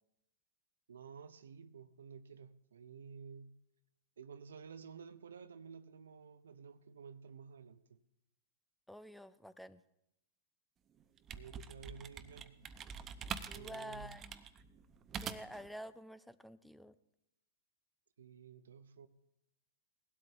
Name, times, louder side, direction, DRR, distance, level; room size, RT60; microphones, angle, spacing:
voice 1, 0.9-3.6 4.2-8.0 11.3-12.6 13.4-14.4 18.2-19.1, right 6 dB, 85° right, 0.7 m, -53 dB
voice 2, 8.9-9.8 13.5-14.4 15.2-17.0, equal, ahead, 0.5 m, -49 dB
sound 1, 11.0-15.7, right 7 dB, 25° right, 0.7 m, -45 dB
18.5 x 12.0 x 3.4 m
hypercardioid pair, 125°, 0 cm